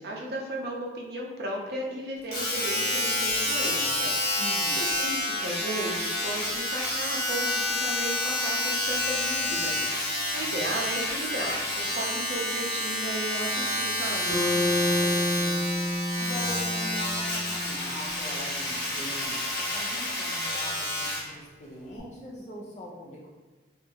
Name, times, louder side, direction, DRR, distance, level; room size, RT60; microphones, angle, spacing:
voice 1, 0.0-4.4 4.8-9.9 10.3-14.4, right 1 dB, 60° right, -1 dB, 0.5 m, -35 dB
Domestic sounds home sounds, 2.3-21.3 22.0-22.1, left 1 dB, 60° left, 1.1 m, -29 dB
voice 2, 4.4-4.8 10.3-10.7 14.5-15.6 16.2-23.3, left 1 dB, 40° left, -3 dB, 0.6 m, -42 dB
Bass guitar, 14.3-18.4, left 1 dB, 25° left, 0.9 m, -29 dB
2.8 x 2.4 x 2.7 m, 1.3 s
head